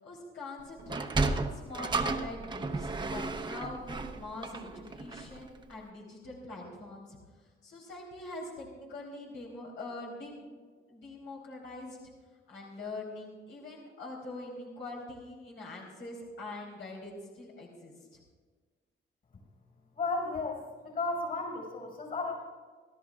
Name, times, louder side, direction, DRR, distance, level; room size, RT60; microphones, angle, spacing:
voice 1, 0.0-7.2 7.6-10.4 10.9-12.0 12.5-18.2, left 2 dB, 75° left, -4 dB, 3.8 m, -44 dB
Sliding door, 0.8-5.4, right 3 dB, 20° right, 0.9 m, -33 dB
voice 2, 20.0-22.4, left 3 dB, 45° left, 0 dB, 5.4 m, -34 dB
29.0 x 13.0 x 2.5 m, 1.5 s
cardioid pair, 130°, 20 cm